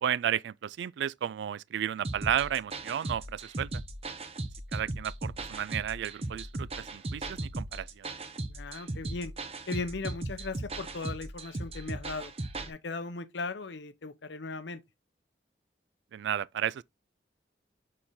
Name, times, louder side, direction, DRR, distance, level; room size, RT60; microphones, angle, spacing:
voice 1, 0.0-3.7 4.7-8.1 16.1-16.8, right 9 dB, 80° right, 0.3 m, -33 dB
sound 1, 2.0-12.7, right 2 dB, 35° right, 0.8 m, -38 dB
voice 2, 8.5-9.3 9.7-12.3 12.7-14.8, left 3 dB, 90° left, 0.8 m, -37 dB
6.5 x 4.3 x 3.6 m
head